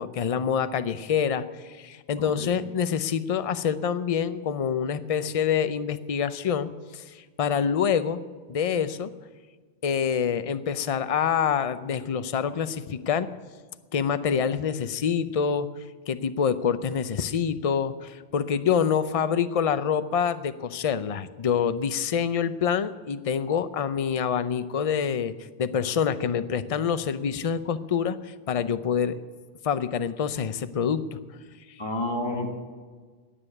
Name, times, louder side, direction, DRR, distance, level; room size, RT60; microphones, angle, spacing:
voice 1, 0.0-8.2 8.5-9.1 9.8-13.3 13.9-15.7 16.1-29.2 29.6-31.2, left 7 dB, 40° left, 12 dB, 0.5 m, -26 dB
voice 2, 2.2-2.5 31.8-32.5, left 1 dB, 20° left, 2 dB, 1.7 m, -30 dB
17.5 x 6.9 x 9.9 m, 1.5 s
omnidirectional pair, 1.2 m